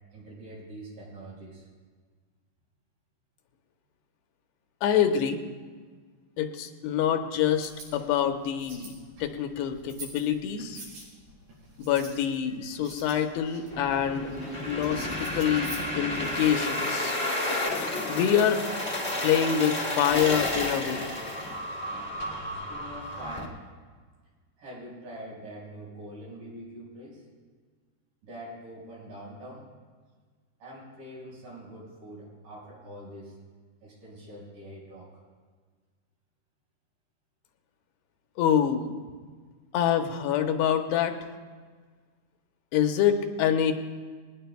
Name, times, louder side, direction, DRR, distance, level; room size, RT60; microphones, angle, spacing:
voice 1, 0.1-1.7 12.5-12.8 22.7-23.6 24.6-27.2 28.2-29.7 30.6-33.4 33.8-35.2, right 1 dB, 60° right, -4 dB, 6.8 m, -44 dB
voice 2, 4.8-5.4 6.4-8.9 9.2-10.8 11.8-14.3 14.7-17.2 17.5-18.6 19.2-21.1 38.4-38.9 39.7-41.2 42.7-43.7, left 9 dB, 90° left, 5 dB, 3.0 m, -26 dB
sound 1, 7.5-16.4, right 2 dB, 80° right, 7.5 m, -48 dB
sound 2, 13.7-23.4, left 1 dB, 45° left, 0.8 m, -31 dB
20.5 x 18.5 x 2.3 m, 1.5 s
omnidirectional pair, 4.7 m